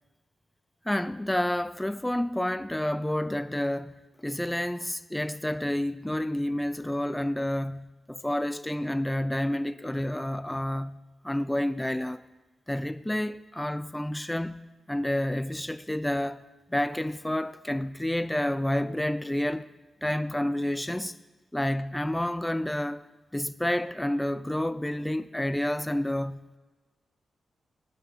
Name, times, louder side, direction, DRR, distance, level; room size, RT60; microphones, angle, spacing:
voice 1, 0.9-12.2 12.7-14.6 14.9-16.4 16.7-19.7 20.0-21.2 21.5-23.0 23.3-26.4, left 1 dB, 10° left, 0.5 m, -29 dB
18.0 x 12.5 x 5.1 m
cardioid pair, 55°, 0 cm